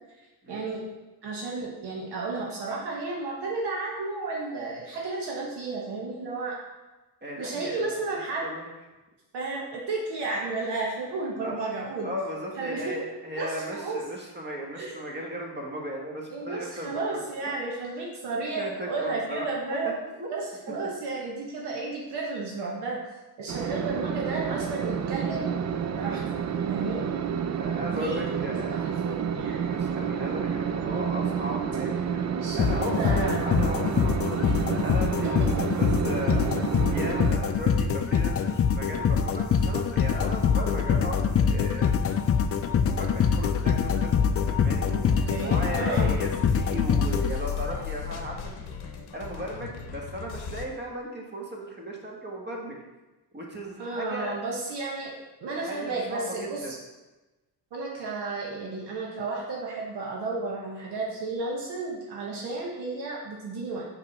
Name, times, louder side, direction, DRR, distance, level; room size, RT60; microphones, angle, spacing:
voice 1, 0.2-0.8 1.2-6.6 7.4-8.4 9.3-12.1 12.6-12.9 13.4-14.0 14.7-14.9 16.3-20.0 20.3-23.0 23.4-25.5 26.0-26.2 26.7-27.0 27.9-29.6 32.4-33.4 34.4-34.5 45.3-46.1 53.8-56.8 57.7-63.8, right 3 dB, 75° right, -3 dB, 1.1 m, -33 dB
voice 2, 7.2-7.9 8.4-8.6 11.4-11.6 12.0-17.2 17.5-17.6 18.6-20.3 27.6-28.8 29.6-36.5 36.9-42.2 42.6-44.1 44.4-48.5 49.1-52.8 53.3-54.3 55.7-56.7, equal, 25° right, -1 dB, 1.4 m, -36 dB
sound 1, 23.5-37.3, right 7 dB, 40° right, 0.4 m, -29 dB
sound 2, 32.6-47.8, left 7 dB, 35° left, 0.4 m, -24 dB
sound 3, 45.1-50.7, left 7 dB, 70° left, 0.8 m, -37 dB
5.0 x 3.4 x 5.5 m, 1.1 s
cardioid pair, 80°, 40 cm